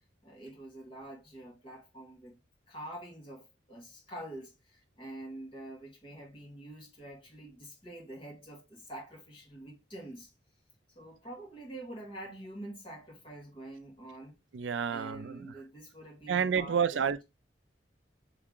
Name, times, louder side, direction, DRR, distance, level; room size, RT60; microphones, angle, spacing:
voice 1, 0.2-2.4 2.7-10.3 10.9-14.4 14.9-17.2, right 1 dB, 30° left, 2.2 m, -46 dB
voice 2, 14.5-15.6 16.3-17.2, right 7 dB, 85° right, 0.4 m, -30 dB
3.6 x 3.3 x 3.7 m
head